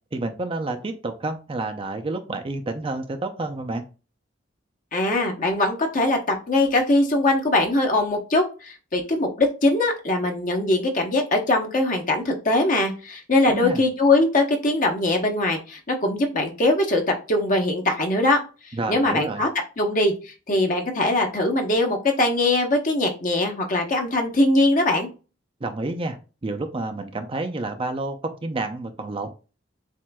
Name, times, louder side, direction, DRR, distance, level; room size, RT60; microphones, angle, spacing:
voice 1, 0.1-3.9 13.4-13.8 18.7-19.4 25.6-26.2 26.4-29.3, right 2 dB, 30° right, 6 dB, 0.5 m, -29 dB
voice 2, 4.9-17.0 17.3-18.4 18.9-19.5 19.8-25.1, left 2 dB, 45° left, 2 dB, 0.9 m, -21 dB
7.3 x 2.5 x 2.3 m, 0.32 s
head